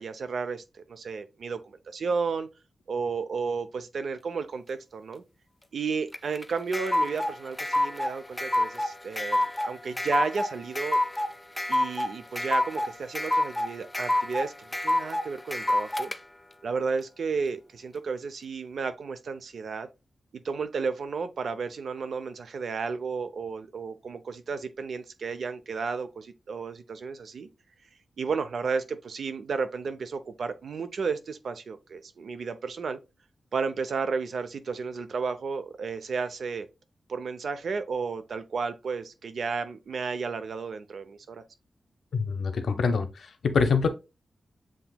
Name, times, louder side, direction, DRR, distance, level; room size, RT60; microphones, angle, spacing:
voice 1, 0.0-2.5 2.9-5.2 5.7-11.0 11.7-16.1 16.6-19.9 20.3-27.5 28.2-33.0 33.5-36.7 37.1-41.4, right 5 dB, 65° right, 0.5 m, -33 dB
sound 1, 6.1-16.2, left 1 dB, 10° left, 0.3 m, -28 dB
voice 2, 42.1-43.9, left 5 dB, 70° left, 0.7 m, -25 dB
7.4 x 2.9 x 2.2 m
wide cardioid pair, 165°, 0 cm